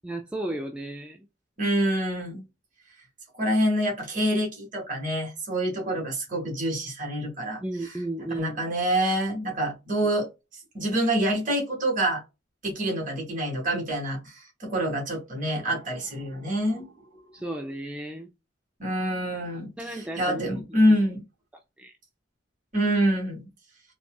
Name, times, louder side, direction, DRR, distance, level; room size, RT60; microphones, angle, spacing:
voice 1, 0.0-1.3 7.6-8.6 10.0-10.1 17.3-18.3 19.8-20.6 21.8-21.9, right 1 dB, 5° right, 0.4 m, -34 dB
voice 2, 1.6-2.4 3.3-7.6 8.4-10.3 10.7-12.2 12.6-17.2 18.8-19.7 20.2-21.2 22.7-23.5, right 1 dB, 45° right, 1.7 m, -26 dB
4.1 x 2.3 x 2.3 m
head